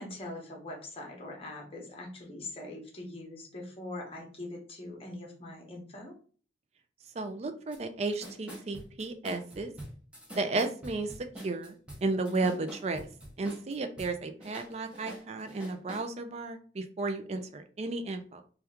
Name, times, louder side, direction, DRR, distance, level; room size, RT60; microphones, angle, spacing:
voice 1, 0.0-6.1 12.3-12.5, left 1 dB, 30° left, 0 dB, 0.9 m, -42 dB
voice 2, 7.2-9.7 10.4-11.1 11.4-13.1 13.4-18.4, right 3 dB, 35° right, 7 dB, 0.4 m, -33 dB
sound 1, 7.7-7.8 8.0-14.1 14.4-16.1, right 1 dB, 5° right, 0.7 m, -45 dB
2.9 x 2.3 x 3.4 m, 0.42 s
head